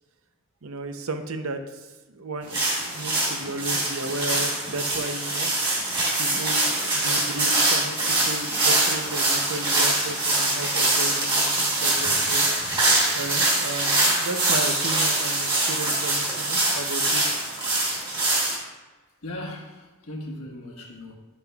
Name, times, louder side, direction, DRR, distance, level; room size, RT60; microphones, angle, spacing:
voice 1, 0.6-5.5 6.2-12.5 13.1-17.2, right 2 dB, 70° right, 7 dB, 0.7 m, -34 dB
sound 1, 2.5-18.6, right 2 dB, 20° right, 2.0 m, -23 dB
voice 2, 19.2-21.2, left 1 dB, 80° left, 0 dB, 1.4 m, -37 dB
9.8 x 7.1 x 2.4 m, 1.2 s
head